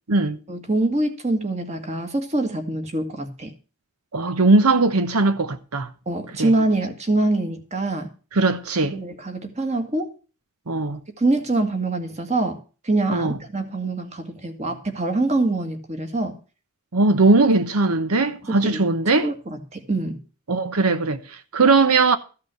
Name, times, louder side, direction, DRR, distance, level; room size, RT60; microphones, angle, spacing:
voice 1, 0.5-3.5 6.1-8.1 8.8-10.1 11.2-12.6 12.8-16.3 18.5-18.8 19.1-20.2, right 2 dB, 30° right, 1.8 m, -24 dB
voice 2, 4.1-5.9 6.4-6.5 8.3-9.0 10.7-11.0 13.1-13.4 16.9-19.3 20.5-22.2, right 3 dB, 85° right, 0.9 m, -19 dB
14.5 x 5.8 x 7.7 m
head